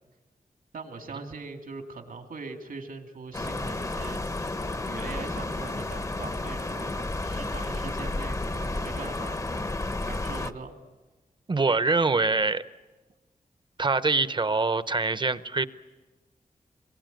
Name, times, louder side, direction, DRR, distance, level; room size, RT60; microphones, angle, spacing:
voice 1, 0.7-4.2 4.9-9.4 10.0-10.7, right 4 dB, 75° right, 5 dB, 2.5 m, -41 dB
sound 1, 3.3-10.5, left 2 dB, 20° left, 0.8 m, -32 dB
voice 2, 11.5-12.6 13.8-15.7, right 3 dB, 35° right, 14 dB, 0.8 m, -24 dB
27.0 x 22.0 x 9.2 m, 1.2 s
wide cardioid pair, 110°, 14 cm